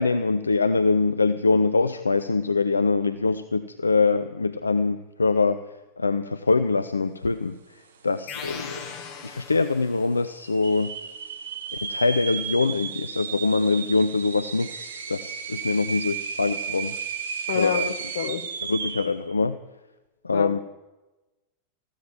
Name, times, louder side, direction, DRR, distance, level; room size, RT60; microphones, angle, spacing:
voice 1, 0.0-5.6 6.0-7.6 8.0-8.9 9.2-11.0 11.8-16.9 17.5-17.9 18.7-19.6 20.2-20.6, left 3 dB, 80° left, 13 dB, 0.5 m, -23 dB
sound 1, 8.2-8.3 8.5-9.1 9.6-9.7 10.4-19.2, right 6 dB, 65° right, 1.3 m, -33 dB
sound 2, 8.3-10.2, left 6 dB, 40° left, 2.1 m, -38 dB
voice 2, 17.5-18.5 20.3-20.6, left 8 dB, 60° left, 12 dB, 1.0 m, -29 dB
14.5 x 12.5 x 7.2 m, 1.1 s
figure-of-eight pair, 90°, 0 cm